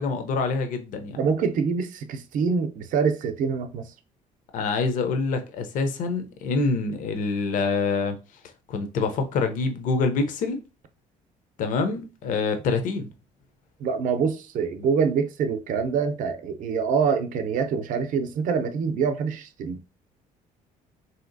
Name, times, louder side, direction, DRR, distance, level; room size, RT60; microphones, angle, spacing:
voice 1, 0.0-1.2 4.5-8.2 8.7-10.6 11.6-13.1, left 4 dB, 60° left, 0.5 m, -26 dB
voice 2, 1.2-3.8 13.8-19.8, right 6 dB, 60° right, 0.5 m, -25 dB
3.2 x 2.8 x 2.5 m
cardioid pair, 110°, 15 cm